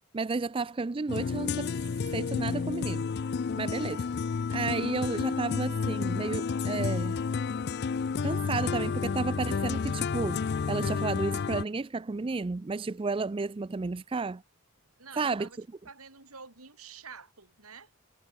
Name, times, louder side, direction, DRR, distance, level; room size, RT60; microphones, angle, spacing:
voice 1, 0.0-1.7 2.1-3.1 3.6-4.1 4.5-7.2 8.2-10.4 10.7-14.4 15.2-15.5, right 3 dB, 25° right, 0.4 m, -32 dB
sound 1, 1.1-11.6, left 5 dB, 50° left, 0.4 m, -31 dB
voice 2, 15.0-15.6 15.8-17.9, right 5 dB, 90° right, 5.8 m, -48 dB
head